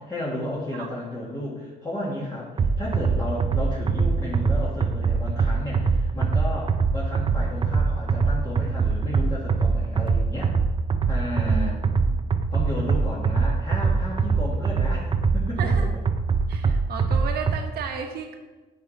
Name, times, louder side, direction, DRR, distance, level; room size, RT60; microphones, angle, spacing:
voice 1, 0.0-10.5 11.1-11.8 12.5-15.7, left 1 dB, 20° left, -6 dB, 1.8 m, -33 dB
sound 1, 2.6-17.6, right 4 dB, 30° right, 0.6 m, -23 dB
voice 2, 15.6-15.9 16.5-18.4, right 5 dB, 65° right, 4 dB, 1.3 m, -33 dB
9.3 x 5.4 x 4.1 m, 1.2 s
cardioid pair, 110°, 17 cm